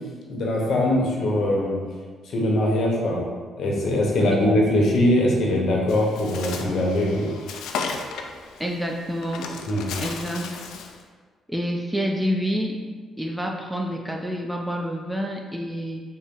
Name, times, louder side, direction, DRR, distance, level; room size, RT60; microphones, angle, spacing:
voice 1, 0.3-1.7 2.3-3.2 3.6-7.3 9.7-9.9, left 1 dB, 65° left, -2 dB, 0.8 m, -21 dB
voice 2, 4.2-4.5 8.6-9.5 10.0-10.5 11.5-12.8 13.2-16.0, equal, 5° right, 1 dB, 0.4 m, -28 dB
Bird, 5.9-11.0, left 5 dB, 85° left, 0.3 m, -35 dB
3.9 x 2.0 x 3.6 m, 1.5 s
cardioid pair, 90°, 0 cm